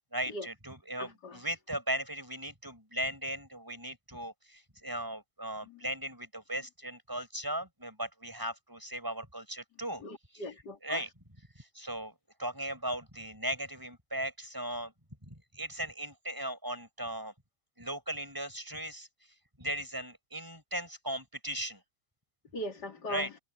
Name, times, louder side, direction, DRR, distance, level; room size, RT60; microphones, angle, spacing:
voice 1, 0.1-10.0 10.3-10.5 10.8-11.1 11.6-12.1 12.4-14.9 15.3-17.3 17.8-19.1 19.6-21.8 23.1-23.3, right 1 dB, 10° right, 6.4 m, -37 dB
voice 2, 1.0-1.4 10.0-11.0 22.5-23.3, left 1 dB, 85° left, 3.3 m, -40 dB
omnidirectional pair, 1.8 m